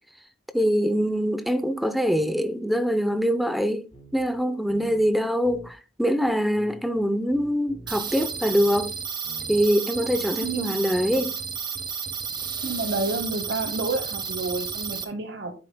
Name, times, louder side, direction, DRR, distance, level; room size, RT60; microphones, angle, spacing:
voice 1, 0.5-3.9 4.1-8.9 9.5-11.3, equal, ahead, 0.6 m, -24 dB
sound 1, 3.9-4.4 4.7-5.1 5.4-5.7 6.2-6.3 6.5-9.0 9.2-9.7 10.0-10.4 10.7-11.3, equal, 30° left, 5.6 m, -47 dB
sound 2, 7.9-15.0, right 6 dB, 25° right, 0.9 m, -32 dB
voice 2, 10.4-10.7 12.6-15.5, right 3 dB, 60° right, 1.0 m, -29 dB
10.5 x 9.0 x 2.2 m
head